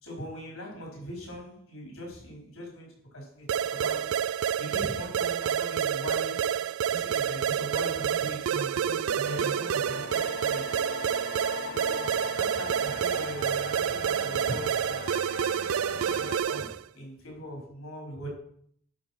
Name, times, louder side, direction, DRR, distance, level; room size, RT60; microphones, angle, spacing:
voice 1, 0.0-4.2 4.6-6.6 6.9-10.6 11.7-15.0 15.6-18.3, equal, 85° left, -1 dB, 4.3 m, -40 dB
sound 1, 3.5-16.8, right 9 dB, 85° right, 0.4 m, -29 dB
sound 2, 9.2-16.4, left 7 dB, 50° left, 0.4 m, -40 dB
11.0 x 5.1 x 5.7 m, 0.63 s
head